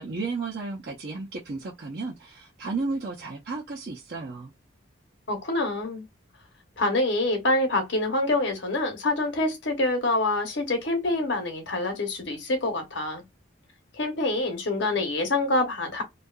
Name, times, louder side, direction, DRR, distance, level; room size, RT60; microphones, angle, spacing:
voice 1, 0.0-4.5, right 3 dB, 50° right, 0.6 m, -33 dB
voice 2, 5.3-6.0 6.8-13.2 13.9-16.0, left 2 dB, 65° left, 0.9 m, -26 dB
2.7 x 2.3 x 2.3 m
head